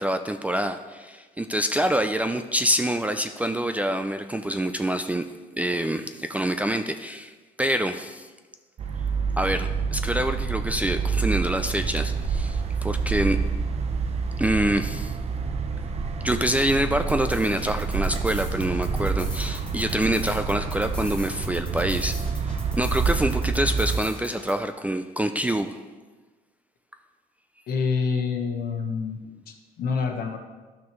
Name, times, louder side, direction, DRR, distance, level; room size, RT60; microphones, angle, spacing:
voice 1, 0.0-5.2 5.6-8.3 9.4-13.4 14.4-15.2 16.2-22.2 22.8-25.8, right 1 dB, 10° right, 7 dB, 0.3 m, -26 dB
sound 1, 8.8-24.0, right 5 dB, 40° right, 0.7 m, -28 dB
sound 2, 17.1-24.5, left 1 dB, 5° left, 1.1 m, -39 dB
voice 2, 27.7-29.2 29.5-30.4, left 5 dB, 65° left, 4 dB, 1.1 m, -27 dB
12.0 x 6.0 x 3.1 m, 1.3 s
cardioid pair, 110°, 17 cm